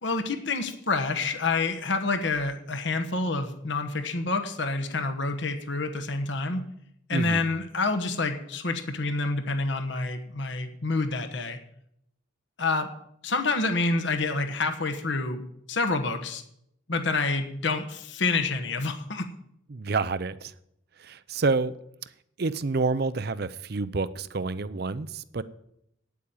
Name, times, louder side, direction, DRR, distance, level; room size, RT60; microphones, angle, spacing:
voice 1, 0.0-6.6 7.1-11.6 12.6-12.9 13.2-15.4 15.7-16.4 16.9-19.3, left 3 dB, 60° left, 1.2 m, -28 dB
voice 2, 7.1-7.5 19.7-20.5 21.0-21.7 22.4-25.4, right 3 dB, 50° right, 0.6 m, -28 dB
9.2 x 8.5 x 8.8 m
head